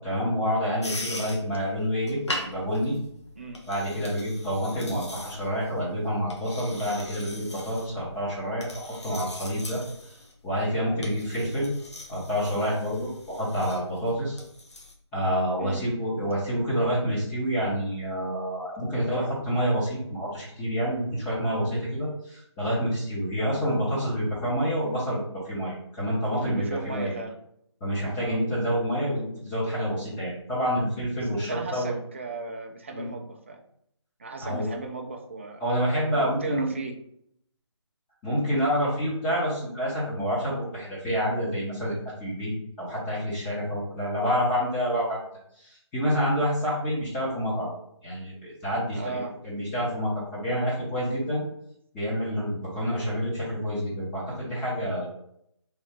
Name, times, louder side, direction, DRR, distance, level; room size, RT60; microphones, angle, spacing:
voice 1, 0.0-3.0 3.7-10.1 10.4-11.7 12.1-14.4 15.1-27.1 27.8-32.0 32.9-33.1 34.4-34.7 35.6-36.7 38.2-42.5 42.8-45.2 45.6-47.7 48.0-49.2 49.4-51.4 51.9-55.1, equal, 10° left, -9 dB, 0.7 m, -28 dB
sound 1, 0.8-14.9, left 1 dB, 70° left, 0.9 m, -41 dB
voice 2, 26.4-27.4 28.2-28.4 31.4-33.6 34.2-35.6 36.1-37.0 48.9-49.4, right 3 dB, 25° right, 3 dB, 0.3 m, -36 dB
3.2 x 2.7 x 3.2 m, 0.73 s
figure-of-eight pair, 150°, 15 cm